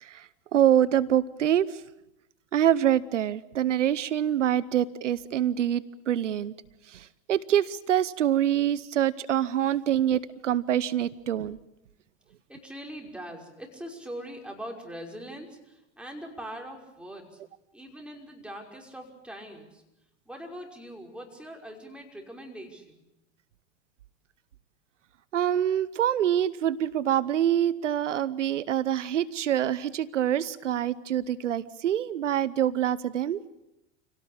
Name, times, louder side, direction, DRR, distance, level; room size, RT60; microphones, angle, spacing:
voice 1, 0.0-1.8 2.5-6.5 6.9-11.6 25.3-33.4, right 10 dB, 90° right, 18 dB, 0.9 m, -25 dB
voice 2, 12.5-17.4 17.7-19.8 20.3-23.0, equal, 5° right, 1 dB, 5.8 m, -42 dB
27.0 x 18.0 x 8.8 m, 0.91 s
hypercardioid pair, 95°, 35 cm